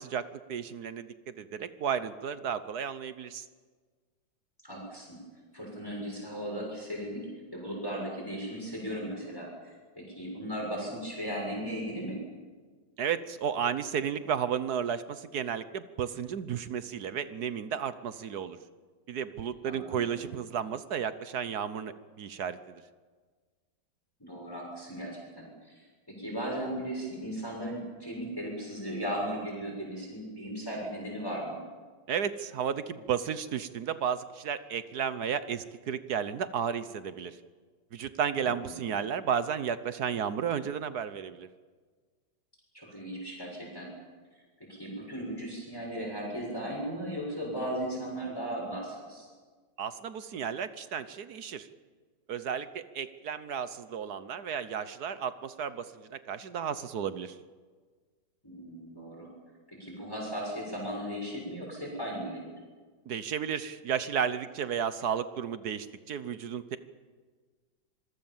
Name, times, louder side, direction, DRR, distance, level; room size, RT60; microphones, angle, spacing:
voice 1, 0.0-3.4 13.0-18.6 19.1-22.8 32.1-37.4 37.9-41.5 49.8-51.7 52.3-57.4 63.1-66.8, right 8 dB, 60° right, 13 dB, 1.4 m, -33 dB
voice 2, 4.6-5.2 5.5-7.3 7.5-12.2 19.7-20.3 24.2-31.6 38.4-38.9 42.7-43.9 44.7-49.3 58.4-59.3 59.7-62.4, equal, 10° left, -3 dB, 7.1 m, -37 dB
26.0 x 21.5 x 7.3 m, 1.5 s
omnidirectional pair, 2.0 m